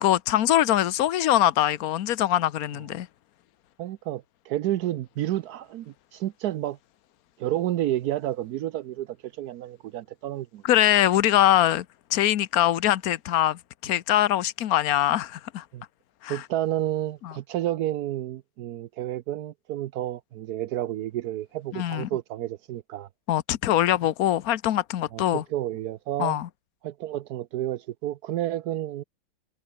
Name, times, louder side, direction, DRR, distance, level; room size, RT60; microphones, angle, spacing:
voice 1, 0.0-3.1 10.6-11.8 12.1-15.6 16.2-16.4 17.2-17.3 21.7-22.1 23.3-25.4 26.2-26.5, left 12 dB, 60° left, 1.0 m, -23 dB
voice 2, 3.8-6.8 7.4-10.6 15.7-15.8 16.3-23.1 25.1-26.4 26.8-29.0, right 13 dB, 80° right, 0.8 m, -30 dB
omnidirectional pair, 2.4 m